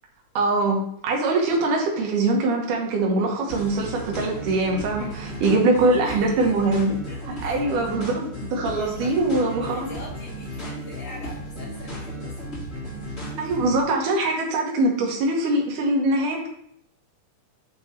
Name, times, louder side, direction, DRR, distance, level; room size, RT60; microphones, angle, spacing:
voice 1, 0.4-6.9 7.4-9.9 13.4-16.5, right 2 dB, 80° right, 0 dB, 2.6 m, -23 dB
sound 1, 3.5-13.8, equal, 30° left, 1.5 m, -35 dB
voice 2, 5.0-6.6 7.1-7.6 8.7-12.3, left 1 dB, 70° left, -10 dB, 4.2 m, -42 dB
9.4 x 3.4 x 4.2 m, 0.72 s
omnidirectional pair, 3.6 m